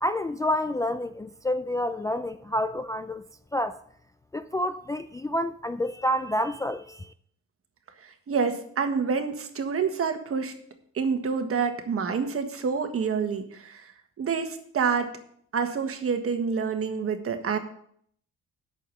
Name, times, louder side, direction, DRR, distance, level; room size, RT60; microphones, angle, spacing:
voice 1, 0.0-3.2 3.5-3.8 4.3-7.1, left 1 dB, 10° left, 0.4 m, -28 dB
voice 2, 8.0-10.6 10.9-13.9 14.2-15.1 15.5-17.6, right 5 dB, 50° right, 1.5 m, -27 dB
8.4 x 6.8 x 6.8 m
cardioid pair, 90°, 30 cm